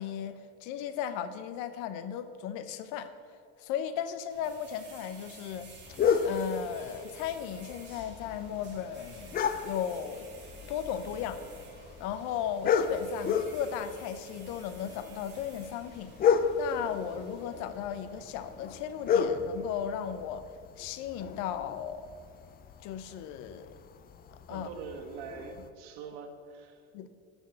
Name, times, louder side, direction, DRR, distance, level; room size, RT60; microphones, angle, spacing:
voice 1, 0.0-3.1 3.6-5.7 6.2-9.3 9.6-11.4 12.0-22.1 22.8-23.7 24.5-24.7 26.9-27.1, left 9 dB, 75° left, 11 dB, 0.8 m, -36 dB
sound 1, 4.3-20.3, right 3 dB, 35° right, 2.2 m, -53 dB
sound 2, 5.9-25.7, left 6 dB, 30° left, 0.5 m, -33 dB
voice 2, 24.5-26.8, right 5 dB, 90° right, 6 dB, 1.4 m, -43 dB
12.5 x 4.6 x 6.9 m, 2.3 s
cardioid pair, 140°, 30 cm